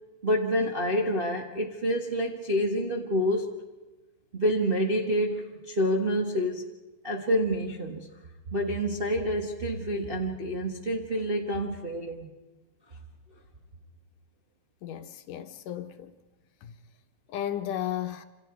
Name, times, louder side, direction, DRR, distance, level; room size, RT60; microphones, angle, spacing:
voice 1, 0.2-3.5 4.3-6.6 7.0-8.1 8.5-12.3, equal, 30° right, 1.1 m, -28 dB
voice 2, 14.8-16.1 16.6-16.7 17.3-18.3, left 11 dB, 75° left, 2.7 m, -34 dB
27.5 x 27.0 x 4.7 m
omnidirectional pair, 3.8 m